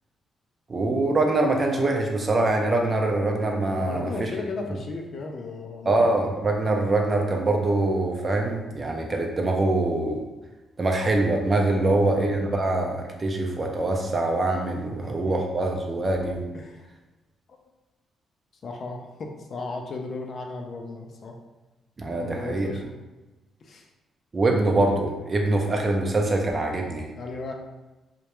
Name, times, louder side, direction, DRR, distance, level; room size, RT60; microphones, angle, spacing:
voice 1, 0.7-4.3 5.9-10.3 10.8-16.5 22.0-22.7 24.3-27.1, right 2 dB, 35° right, 2 dB, 0.4 m, -24 dB
voice 2, 3.7-6.0 11.8-12.1 14.8-15.4 16.5-16.9 17.5-17.6 18.6-21.4 22.2-22.8 23.6-23.9 27.2-27.5, left 3 dB, 55° left, 2 dB, 0.4 m, -35 dB
2.1 x 2.1 x 2.9 m, 1.1 s
cardioid pair, 80°, 0 cm